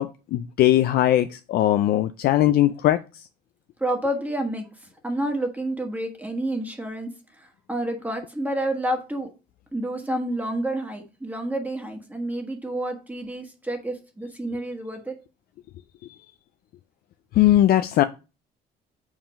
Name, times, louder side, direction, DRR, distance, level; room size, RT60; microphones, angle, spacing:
voice 1, 0.0-3.2 17.4-18.0, left 13 dB, 65° left, 10 dB, 0.4 m, -20 dB
voice 2, 3.8-4.6 5.0-7.1 7.7-9.3 9.7-15.1, right 1 dB, 10° right, 2 dB, 1.4 m, -29 dB
5.6 x 4.9 x 5.1 m, 0.32 s
cardioid pair, 110°, 17 cm